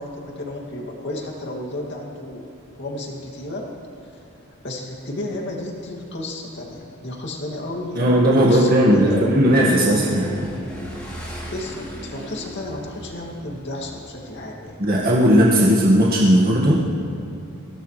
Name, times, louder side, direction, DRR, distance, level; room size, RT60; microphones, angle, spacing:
voice 1, 0.0-2.5 2.8-3.7 4.6-8.1 8.5-9.4 11.2-14.8, left 1 dB, 50° left, -1 dB, 2.5 m, -32 dB
Motorcycle / Engine, 8.0-15.1, equal, 5° left, 3.7 m, -39 dB
voice 2, 8.0-10.5 14.8-16.8, equal, 40° right, -5 dB, 1.8 m, -16 dB
23.5 x 17.0 x 3.3 m, 2.7 s
head